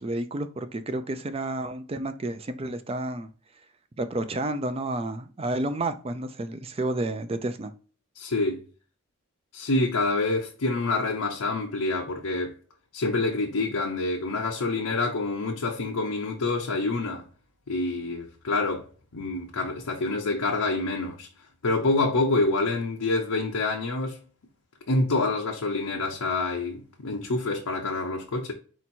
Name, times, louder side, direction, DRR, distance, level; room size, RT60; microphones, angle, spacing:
voice 1, 0.0-3.3 4.0-7.7, right 2 dB, 25° right, 0.4 m, -30 dB
voice 2, 8.2-8.6 9.5-12.6 12.9-17.2 17.7-18.9 19.1-21.3 21.6-24.2 24.9-28.5, left 2 dB, 85° left, 0.7 m, -27 dB
4.4 x 2.9 x 4.2 m
head